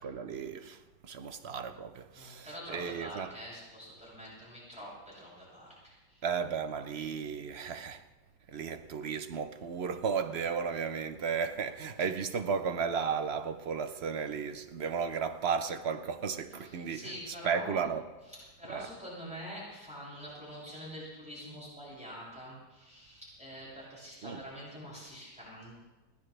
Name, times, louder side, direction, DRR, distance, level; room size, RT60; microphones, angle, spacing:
voice 1, 0.0-3.3 6.2-8.0 8.5-17.1 17.4-18.1 18.7-18.9 24.2-24.4, right 6 dB, 50° right, 0.8 m, -34 dB
voice 2, 2.2-6.3 16.6-17.8 18.3-25.7, equal, 5° right, 7.1 m, -46 dB
21.0 x 17.0 x 3.3 m
omnidirectional pair, 1.8 m